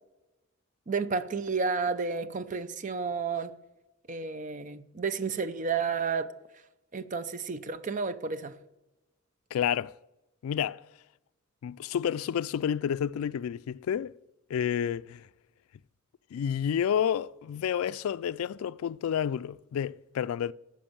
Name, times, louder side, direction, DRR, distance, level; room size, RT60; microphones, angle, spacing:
voice 1, 0.9-3.5 4.1-6.3 6.9-8.6, right 5 dB, 35° right, 0.5 m, -31 dB
voice 2, 9.5-10.0 10.4-10.8 11.6-14.1 14.5-15.3 16.3-20.5, left 8 dB, 80° left, 0.3 m, -30 dB
14.0 x 5.3 x 7.0 m
head